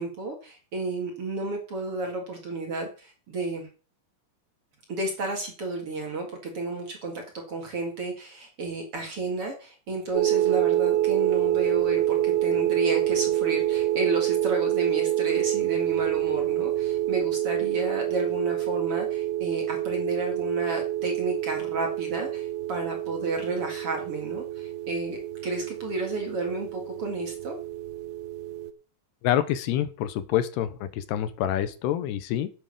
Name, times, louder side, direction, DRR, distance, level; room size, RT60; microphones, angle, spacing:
voice 1, 0.0-3.7 4.9-27.6, right 2 dB, 40° right, 2 dB, 2.4 m, -31 dB
sound 1, 10.1-28.7, right 13 dB, 80° right, 2.7 m, -27 dB
voice 2, 29.2-32.5, left 11 dB, 85° left, 13 dB, 2.9 m, -27 dB
9.0 x 7.9 x 6.6 m, 0.37 s
omnidirectional pair, 4.8 m